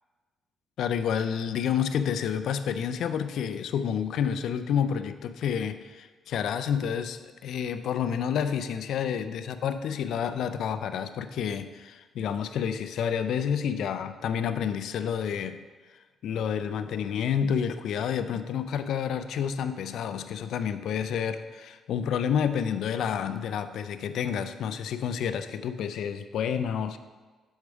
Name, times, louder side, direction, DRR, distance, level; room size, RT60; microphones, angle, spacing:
voice 1, 0.8-15.6 16.2-27.0, left 8 dB, 75° left, 10 dB, 0.4 m, -29 dB
6.4 x 4.9 x 4.6 m, 1.3 s
cardioid pair, 90°, 0 cm